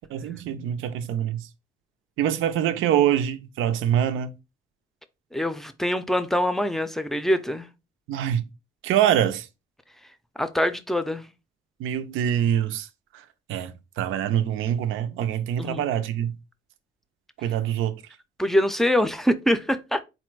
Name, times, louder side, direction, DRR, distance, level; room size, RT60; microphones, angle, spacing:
voice 1, 0.1-1.5 2.2-4.3 8.1-8.5 8.8-9.5 11.8-12.9 13.5-16.3 17.4-17.9, right 10 dB, 85° right, 0.5 m, -24 dB
voice 2, 5.3-7.7 10.4-11.3 15.6-15.9 18.4-20.0, equal, ahead, 0.5 m, -24 dB
4.1 x 2.2 x 4.5 m
cardioid pair, 90°, 20 cm